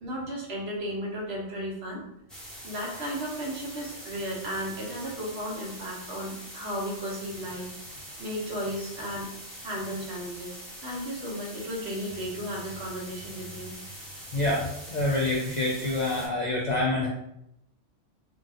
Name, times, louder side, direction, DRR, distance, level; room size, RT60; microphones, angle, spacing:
voice 1, 0.0-2.0 2.6-9.3 9.6-13.7, equal, 60° right, -3 dB, 1.0 m, -35 dB
sound 1, 2.3-16.3, equal, ahead, 0.8 m, -44 dB
voice 2, 14.3-17.1, left 2 dB, 60° left, -3 dB, 0.4 m, -27 dB
2.9 x 2.6 x 2.6 m, 0.78 s
omnidirectional pair, 1.3 m